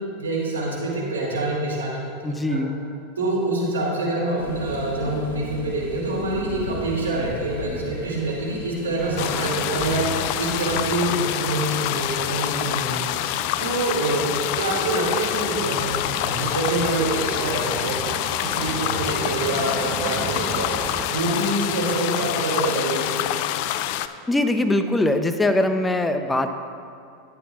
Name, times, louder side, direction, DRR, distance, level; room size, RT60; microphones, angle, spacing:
voice 1, 0.2-2.6 3.2-10.0 10.4-13.0 13.6-14.3 14.5-18.0 18.4-20.7 21.1-23.3, right 2 dB, 85° right, -3 dB, 2.4 m, -26 dB
voice 2, 2.2-2.7 24.3-26.5, left 1 dB, 10° left, 8 dB, 0.7 m, -22 dB
sound 1, 4.4-11.0, left 3 dB, 80° left, 1.7 m, -37 dB
sound 2, 9.0-21.1, right 3 dB, 20° right, 0.9 m, -36 dB
sound 3, 9.2-24.1, left 13 dB, 60° left, 0.3 m, -26 dB
13.0 x 9.3 x 2.4 m, 2.3 s
hypercardioid pair, 95°, 0 cm